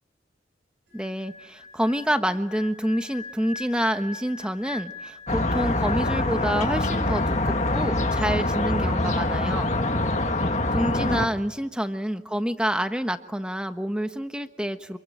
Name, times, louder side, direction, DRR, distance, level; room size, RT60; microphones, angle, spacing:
voice 1, 0.9-9.7 10.7-15.0, equal, 5° right, 8 dB, 1.2 m, -28 dB
sound 1, 0.9-7.3 7.5-7.8, left 3 dB, 60° right, 7.8 m, -41 dB
sound 2, 5.3-11.3, left 2 dB, 40° left, 1.9 m, -24 dB
27.5 x 24.0 x 9.0 m, 1.2 s
head